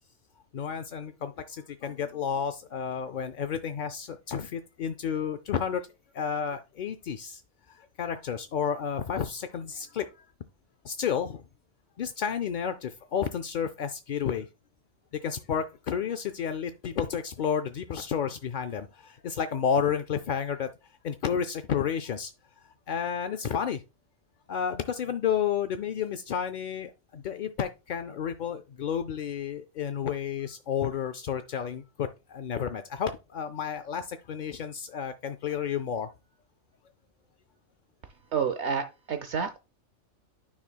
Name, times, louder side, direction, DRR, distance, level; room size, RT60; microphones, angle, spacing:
voice 1, 0.5-5.8 6.1-7.4 7.7-10.2 10.8-11.4 12.0-14.5 15.2-20.7 21.0-22.3 22.9-23.8 24.5-36.1, left 7 dB, 65° left, 0.5 m, -31 dB
voice 2, 38.3-39.6, right 6 dB, 65° right, 0.9 m, -29 dB
9.6 x 5.7 x 2.3 m
omnidirectional pair, 1.3 m